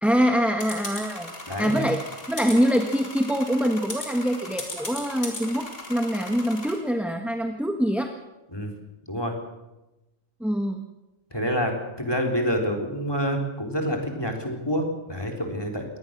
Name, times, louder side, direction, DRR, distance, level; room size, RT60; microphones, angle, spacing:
voice 1, 0.0-1.3 1.6-2.0 2.3-8.1 10.4-10.9, equal, ahead, 4 dB, 1.4 m, -24 dB
sound 1, 0.6-6.8, left 2 dB, 75° left, 4.6 m, -37 dB
voice 2, 1.5-1.8 8.5-8.7 9.1-9.3 11.3-15.8, equal, 20° left, 2 dB, 3.8 m, -27 dB
23.5 x 18.5 x 6.7 m, 1.0 s
omnidirectional pair, 1.3 m